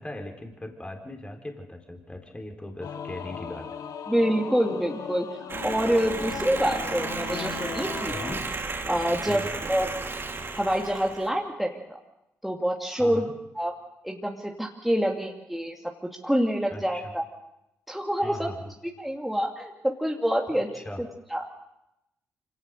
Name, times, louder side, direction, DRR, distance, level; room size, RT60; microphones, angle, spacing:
voice 1, 0.0-3.7 8.1-8.5 9.3-9.5 12.9-13.3 16.7-17.1 18.2-18.7 20.5-21.0, left 1 dB, 15° left, 3 dB, 4.0 m, -39 dB
Singing / Musical instrument, 2.8-8.4, left 7 dB, 60° left, 1.5 m, -37 dB
voice 2, 4.1-5.3 5.6-8.4 8.9-9.9 10.5-12.0 12.4-13.2 13.6-13.7 14.0-15.7 16.2-17.2 17.9-18.5 19.0-19.7 20.0-20.7 21.0-21.4, equal, ahead, 0 dB, 2.5 m, -26 dB
sound 1, 5.5-11.3, right 3 dB, 35° right, 3.3 m, -33 dB
25.5 x 17.5 x 6.7 m, 0.89 s
hypercardioid pair, 50°, 7 cm